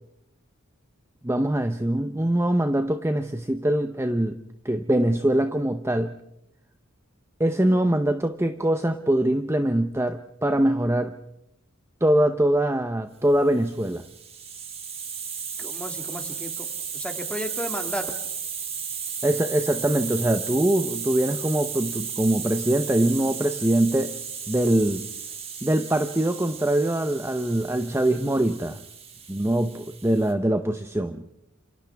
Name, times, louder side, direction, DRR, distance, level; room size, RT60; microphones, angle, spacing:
voice 1, 1.2-4.4 4.6-6.2 7.4-11.2 12.0-14.0 19.2-24.1 24.5-25.0 25.6-28.8 29.3-31.2, right 1 dB, 10° right, 8 dB, 0.8 m, -23 dB
Hiss, 13.7-30.3, right 7 dB, 30° right, 2.6 m, -35 dB
voice 2, 15.6-18.1, left 1 dB, 5° left, 4 dB, 2.3 m, -34 dB
30.0 x 28.0 x 3.5 m, 0.85 s
head